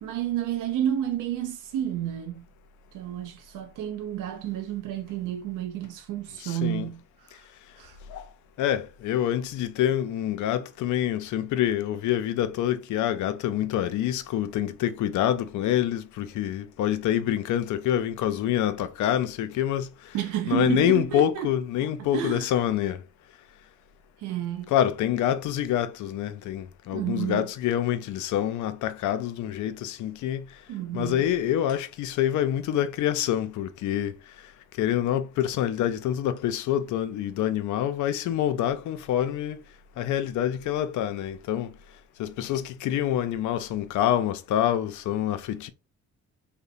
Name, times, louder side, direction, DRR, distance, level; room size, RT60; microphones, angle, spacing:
voice 1, 0.0-2.4 2.9-7.5 7.8-8.0 20.1-21.5 22.0-22.5 24.2-24.7 26.9-27.5 30.7-31.2, right 11 dB, 85° right, 0.5 m, -31 dB
voice 2, 6.4-6.9 8.1-8.3 8.6-20.2 20.5-23.0 24.7-30.5 30.9-34.2 34.8-39.6 40.0-41.7 42.2-45.7, left 11 dB, 75° left, 0.5 m, -26 dB
2.8 x 2.1 x 2.4 m
cardioid pair, 90°, 30 cm